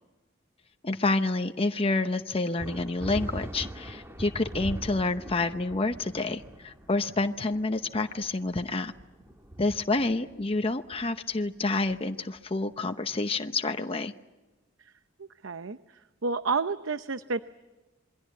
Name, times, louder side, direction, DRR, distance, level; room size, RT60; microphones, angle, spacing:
voice 1, 0.8-8.9 9.6-14.1, left 2 dB, 30° left, 7 dB, 0.8 m, -28 dB
sound 1, 2.6-12.5, right 1 dB, 15° right, 2.0 m, -42 dB
voice 2, 15.2-15.8 16.2-17.4, right 4 dB, 80° right, 11 dB, 0.8 m, -30 dB
27.5 x 23.0 x 8.3 m, 1.1 s
head